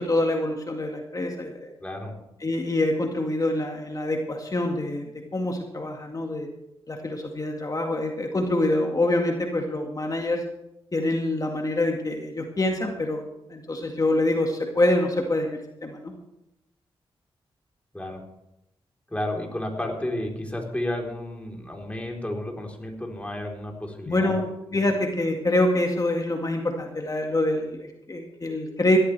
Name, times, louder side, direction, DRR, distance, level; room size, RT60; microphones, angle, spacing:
voice 1, 0.0-1.7 2.4-6.5 6.9-10.4 10.9-13.2 13.5-16.1 24.1-24.5 24.7-29.0, left 1 dB, 35° left, 2 dB, 2.0 m, -25 dB
voice 2, 1.8-2.1 17.9-18.2 19.1-24.4, left 1 dB, 10° left, 0 dB, 4.0 m, -32 dB
17.5 x 13.5 x 3.5 m, 0.86 s
cardioid pair, 55°, 10 cm